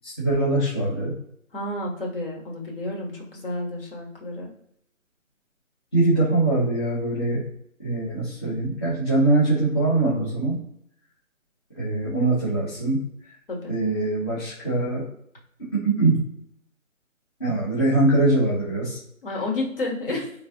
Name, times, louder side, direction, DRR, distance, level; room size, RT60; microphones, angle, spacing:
voice 1, 0.0-1.1 5.9-7.4 7.8-10.6 11.7-13.0 13.7-15.0 15.6-16.2 17.4-19.0, right 2 dB, 20° left, -10 dB, 0.8 m, -22 dB
voice 2, 1.5-4.5 13.5-13.7 19.2-20.3, left 2 dB, 40° left, -1 dB, 1.4 m, -30 dB
4.1 x 3.2 x 2.8 m, 0.71 s
figure-of-eight pair, 160°, 42 cm